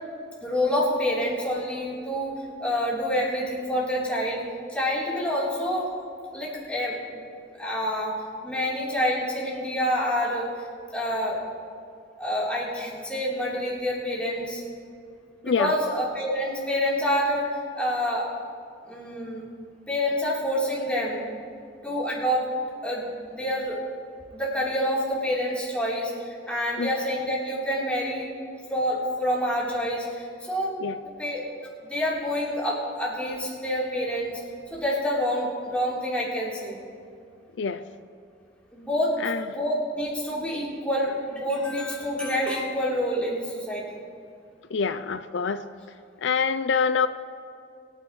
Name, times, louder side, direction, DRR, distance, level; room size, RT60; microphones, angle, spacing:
voice 1, 0.4-4.4 4.7-5.9 6.3-7.2 7.6-8.1 8.4-10.4 10.9-11.4 12.2-14.6 15.4-17.5 17.7-18.3 18.8-19.4 19.9-21.2 21.8-22.4 22.8-23.8 24.3-26.1 26.5-28.3 28.7-30.7 31.2-31.4 31.8-34.4 34.7-36.8 38.7-39.1 39.5-44.0, equal, 5° left, -7 dB, 3.6 m, -27 dB
voice 2, 44.7-45.6 46.2-47.1, left 5 dB, 80° left, 11 dB, 0.4 m, -25 dB
24.0 x 9.7 x 3.2 m, 2.4 s
head